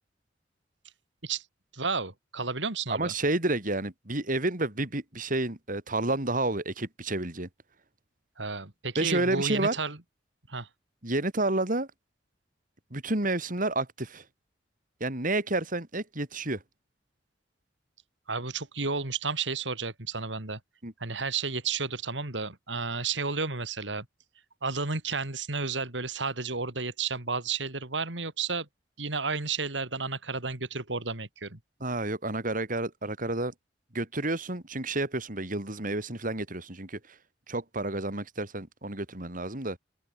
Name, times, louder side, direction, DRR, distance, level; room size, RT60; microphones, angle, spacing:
voice 1, 1.7-3.1 8.4-10.0 10.5-10.7 18.3-20.6 21.0-24.1 24.6-28.7 29.0-31.6, right 4 dB, 85° right, 3.8 m, -32 dB
voice 2, 2.9-7.5 9.0-9.8 11.0-11.9 12.9-14.2 15.0-16.6 20.8-20.9 31.8-33.5 33.9-37.2 37.5-39.8, right 2 dB, 50° right, 4.0 m, -30 dB
open air
head